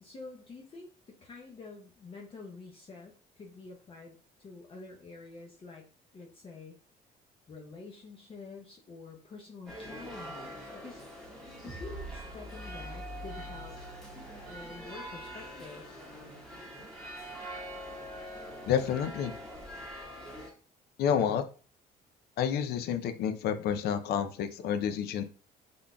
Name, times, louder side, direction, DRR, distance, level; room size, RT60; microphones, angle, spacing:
voice 1, 0.0-5.9 6.1-6.8 7.5-11.0 11.6-13.8 14.3-15.9, left 3 dB, 35° left, 0 dB, 0.7 m, -48 dB
sound 1, 9.7-20.5, right 1 dB, 5° left, 1.5 m, -44 dB
sound 2, 11.6-15.1, left 1 dB, 35° right, 0.5 m, -45 dB
voice 2, 18.7-19.3 21.0-21.5 22.4-25.2, left 8 dB, 70° left, 10 dB, 0.5 m, -29 dB
3.7 x 3.7 x 2.2 m, 0.38 s
cardioid pair, 110°, 17 cm